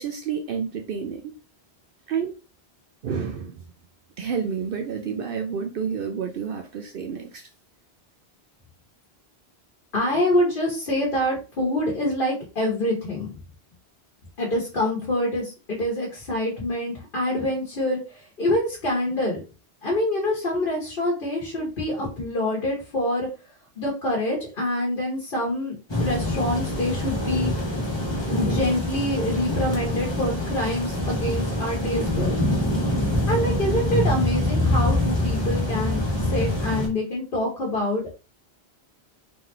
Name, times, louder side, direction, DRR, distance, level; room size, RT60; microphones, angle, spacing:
voice 1, 0.0-1.3 2.1-2.3 3.0-3.6 4.2-7.5, right 6 dB, 65° right, 0.7 m, -29 dB
voice 2, 9.9-13.4 14.4-19.4 19.8-23.3 23.8-27.5 28.3-32.4 33.3-38.1, left 1 dB, 55° left, 1.4 m, -26 dB
sound 1, 25.9-36.9, left 1 dB, 25° left, 1.3 m, -25 dB
3.8 x 3.0 x 3.3 m
omnidirectional pair, 1.1 m